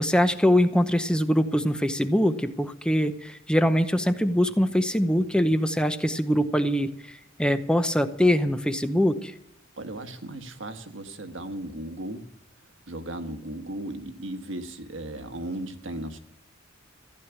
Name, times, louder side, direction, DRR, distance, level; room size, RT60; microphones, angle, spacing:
voice 1, 0.0-9.3, equal, 5° left, 9 dB, 0.7 m, -23 dB
voice 2, 9.8-12.3 12.9-16.2, right 1 dB, 70° right, 9 dB, 1.4 m, -36 dB
15.5 x 10.0 x 7.1 m, 0.77 s
head